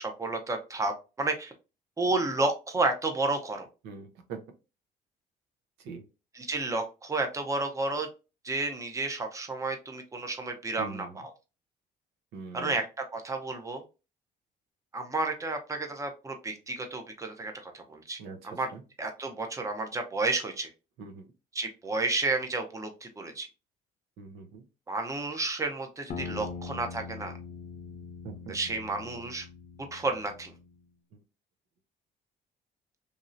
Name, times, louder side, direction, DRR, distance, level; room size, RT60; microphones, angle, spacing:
voice 1, 0.0-1.5 2.0-3.7 6.3-8.1 8.4-11.3 12.5-13.8 14.9-18.2 18.5-18.7 19.0-20.7 21.5-23.5 24.9-27.3 28.5-29.5 29.9-30.5, right 3 dB, 20° right, 4 dB, 0.7 m, -31 dB
voice 2, 3.8-4.4 5.8-6.0 10.8-11.2 12.3-12.7 18.2-18.8 21.0-21.3 24.2-24.6 28.2-28.5, right 5 dB, 90° right, 6 dB, 0.8 m, -42 dB
sound 1, 26.1-30.8, left 5 dB, 50° left, 0.7 m, -42 dB
3.2 x 2.7 x 2.5 m, 0.30 s
cardioid pair, 110°, 17 cm